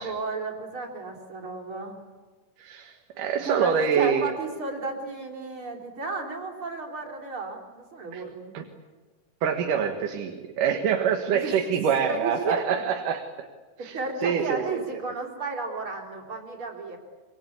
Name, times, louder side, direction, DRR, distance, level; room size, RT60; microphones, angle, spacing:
voice 1, 0.0-2.0 3.4-8.6 11.3-11.6 12.1-12.8 13.8-17.0, right 3 dB, 40° right, 2 dB, 4.4 m, -33 dB
voice 2, 2.6-4.3 8.1-8.2 8.5-8.6 9.4-13.5 13.8-14.0 14.2-14.8, right 7 dB, 85° right, 4 dB, 3.1 m, -26 dB
26.0 x 24.0 x 8.6 m, 1.3 s
omnidirectional pair, 3.6 m